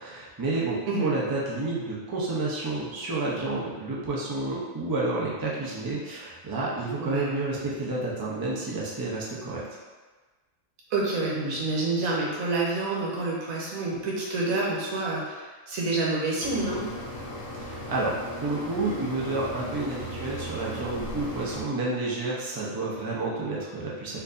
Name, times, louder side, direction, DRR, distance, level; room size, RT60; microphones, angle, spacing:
voice 1, 0.0-9.6 17.6-24.2, right 2 dB, 30° right, -5 dB, 0.4 m, -30 dB
voice 2, 7.0-7.3 10.9-16.8, right 2 dB, 85° right, -4 dB, 1.3 m, -28 dB
sound 1, 16.4-21.6, equal, 70° left, 1.0 m, -37 dB
4.5 x 2.6 x 2.5 m, 1.3 s
omnidirectional pair, 1.4 m